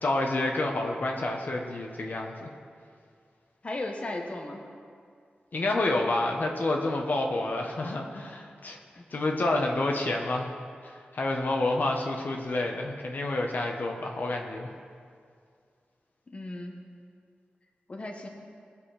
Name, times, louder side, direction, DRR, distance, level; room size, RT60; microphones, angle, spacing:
voice 1, 0.0-2.5 5.5-8.8 9.1-10.5 10.8-14.7, left 2 dB, 55° left, 1 dB, 1.3 m, -29 dB
voice 2, 3.6-4.6 9.0-9.1 16.3-16.8 17.9-18.3, left 2 dB, 35° left, 1 dB, 1.3 m, -36 dB
20.5 x 6.8 x 5.1 m, 2.2 s
wide cardioid pair, 115°, 4 cm